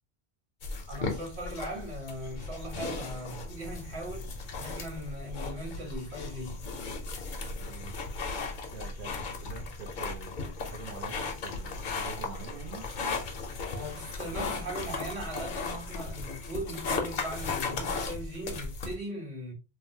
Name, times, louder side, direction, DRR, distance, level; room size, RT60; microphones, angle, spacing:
sound 1, 0.6-19.0, left 4 dB, 55° left, 0.7 m, -36 dB
voice 1, 0.9-6.6 13.7-19.5, right 1 dB, 80° right, 1.5 m, -39 dB
voice 2, 7.5-8.0 8.7-12.9, right 5 dB, 55° right, 0.8 m, -45 dB
3.1 x 2.1 x 2.7 m
omnidirectional pair, 1.1 m